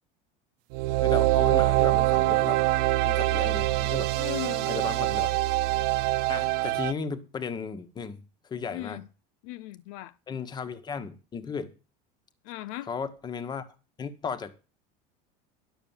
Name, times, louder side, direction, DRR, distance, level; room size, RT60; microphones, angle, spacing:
sound 1, 0.7-6.9, right 17 dB, 65° right, 0.7 m, -24 dB
voice 1, 1.0-2.6 3.0-4.1 4.7-5.3 6.3-9.0 10.3-11.7 12.9-13.6 14.0-14.5, left 5 dB, 25° left, 1.3 m, -35 dB
voice 2, 4.2-4.7 8.7-9.0 9.4-10.1 12.4-12.9, left 16 dB, 70° left, 0.6 m, -37 dB
11.5 x 6.9 x 7.2 m
supercardioid pair, 135°, 18 cm